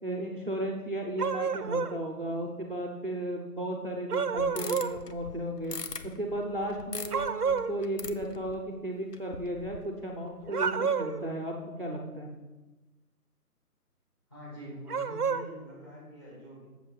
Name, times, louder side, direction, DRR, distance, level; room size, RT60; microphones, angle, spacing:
voice 1, 0.0-5.8 6.2-11.5 11.8-12.3, right 1 dB, 35° right, -1 dB, 0.8 m, -34 dB
sound 1, 1.2-2.0 4.1-5.0 7.1-7.7 10.5-11.2 14.9-15.5, right 6 dB, 70° right, 0.8 m, -29 dB
sound 2, 4.4-8.8 9.1-10.1 10.4-10.7, left 5 dB, 80° left, 1.0 m, -42 dB
voice 2, 14.3-16.7, equal, 15° left, -8 dB, 2.3 m, -45 dB
7.8 x 7.0 x 5.1 m, 1.2 s
figure-of-eight pair, 180°, 47 cm